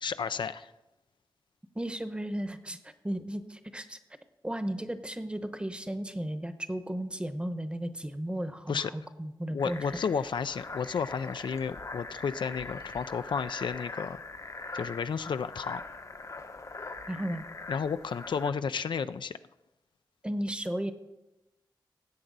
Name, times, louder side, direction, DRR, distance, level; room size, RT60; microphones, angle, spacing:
voice 1, 0.0-0.7 8.7-8.9 9.5-14.2 14.7-15.8 17.7-19.4, left 6 dB, 70° left, 12 dB, 0.4 m, -32 dB
voice 2, 1.7-4.0 4.4-9.8 17.1-17.4 20.2-20.9, right 1 dB, 15° right, 10 dB, 0.9 m, -34 dB
sound 1, 9.6-18.5, left 3 dB, 40° left, 0.8 m, -42 dB
17.5 x 7.7 x 4.0 m, 0.97 s
cardioid pair, 70°, 8 cm